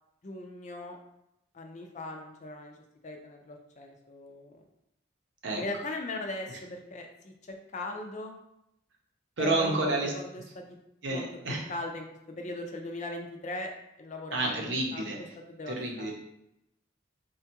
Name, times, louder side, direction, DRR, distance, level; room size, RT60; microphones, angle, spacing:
voice 1, 0.2-1.0 1.5-4.6 5.5-8.3 9.4-10.6 11.1-11.2 11.7-13.7 14.0-15.1 15.5-16.1, left 2 dB, 35° left, 3 dB, 0.4 m, -39 dB
voice 2, 9.4-10.1 11.0-11.6 14.3-15.2 15.7-16.1, right 2 dB, 65° right, 0 dB, 0.7 m, -29 dB
4.3 x 2.3 x 2.8 m, 0.83 s
head